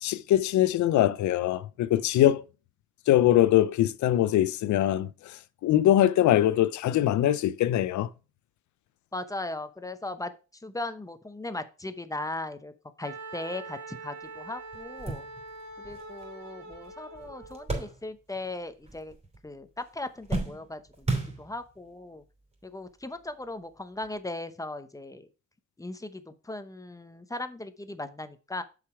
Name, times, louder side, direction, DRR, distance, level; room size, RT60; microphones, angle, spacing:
voice 1, 0.0-2.4 3.1-8.1, left 12 dB, 70° left, 0.6 m, -23 dB
voice 2, 9.1-10.3 10.6-12.7 13.0-15.3 15.8-19.1 19.4-22.2 22.6-25.3 25.8-28.6, left 2 dB, 10° left, 0.8 m, -38 dB
Wind instrument woodwind instrument, 13.0-17.7, right 3 dB, 65° right, 2.4 m, -43 dB
sound 1, 14.2-14.3 14.7-18.5 18.8-19.5 19.8-21.9 22.6-22.7 24.0-24.2, right 2 dB, 20° right, 3.2 m, -35 dB
6.8 x 5.0 x 4.7 m
cardioid pair, 90°, 30 cm